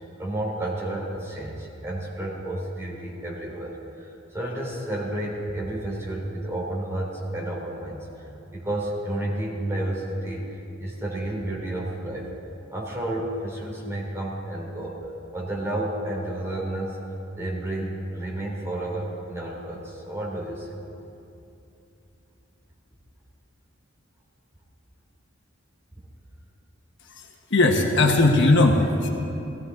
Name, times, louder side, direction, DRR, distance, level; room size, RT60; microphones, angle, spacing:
voice 1, 0.2-12.3 12.7-15.0 15.3-17.0 17.3-20.7, right 1 dB, 15° right, -4 dB, 2.8 m, -31 dB
voice 2, 27.2-29.1, left 2 dB, 60° left, 2 dB, 1.2 m, -19 dB
18.0 x 15.0 x 3.8 m, 2.8 s
head